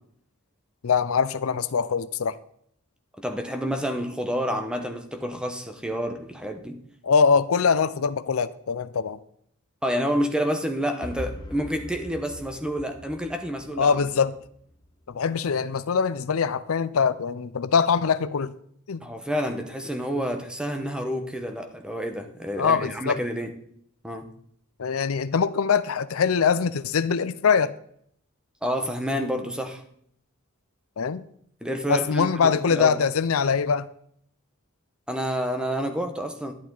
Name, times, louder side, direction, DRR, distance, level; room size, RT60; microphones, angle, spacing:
voice 1, 0.8-2.4 7.0-9.2 13.8-14.3 15.1-18.5 18.9-19.0 22.6-23.2 24.8-27.7 31.0-31.2 31.9-33.9, left 6 dB, 75° left, 0.5 m, -23 dB
voice 2, 3.2-6.8 9.8-14.1 19.0-23.5 24.0-24.3 28.6-29.8 31.6-33.0 35.1-36.5, equal, 5° right, 1.1 m, -29 dB
sound 1, 11.0-14.9, equal, 20° left, 0.9 m, -41 dB
11.5 x 11.0 x 3.9 m
head